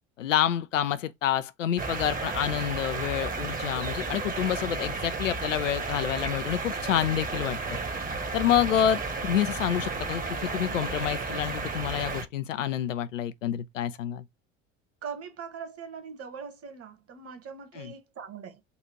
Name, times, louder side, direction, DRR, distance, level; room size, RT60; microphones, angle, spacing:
voice 1, 0.2-7.8 8.3-14.2 17.8-17.9, left 10 dB, 85° left, 0.5 m, -28 dB
sound 1, 1.8-12.2, right 3 dB, 20° right, 1.1 m, -33 dB
voice 2, 15.0-18.6, right 6 dB, 40° right, 1.6 m, -41 dB
4.0 x 2.4 x 4.5 m
hypercardioid pair, 70°, 37 cm